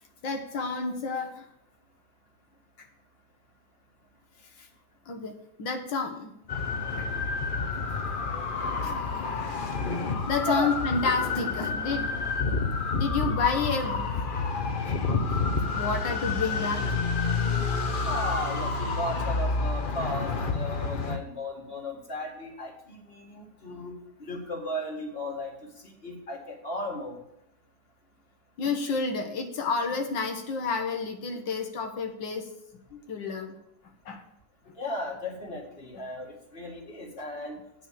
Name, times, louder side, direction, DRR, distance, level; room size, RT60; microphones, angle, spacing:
voice 1, 0.2-1.5 4.6-4.7 5.1-6.3 7.0-7.1 8.8-9.5 10.3-12.2 13.0-14.1 15.8-16.9 28.6-32.5 32.9-33.5 34.1-34.2, left 4 dB, 70° left, 4 dB, 1.8 m, -30 dB
sound 1, 6.5-21.2, left 4 dB, 50° left, 0.6 m, -29 dB
voice 2, 18.1-27.2 34.8-37.6, left 1 dB, 30° left, 1 dB, 2.0 m, -35 dB
8.6 x 6.2 x 7.3 m, 0.79 s
omnidirectional pair, 2.1 m